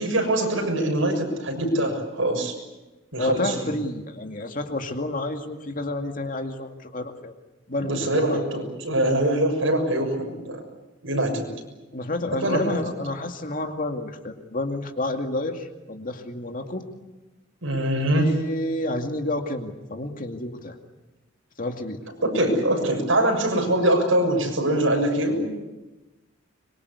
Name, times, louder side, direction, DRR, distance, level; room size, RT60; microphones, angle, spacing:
voice 1, 0.0-2.5 3.1-3.6 7.8-10.6 11.0-11.5 12.4-12.8 17.6-18.3 22.2-25.6, right 1 dB, 85° right, 3 dB, 6.8 m, -23 dB
voice 2, 3.2-7.3 7.7-8.4 11.9-16.8 18.2-20.7 21.6-22.0, left 2 dB, 45° left, 4 dB, 2.3 m, -29 dB
25.0 x 23.5 x 8.3 m, 1.1 s
head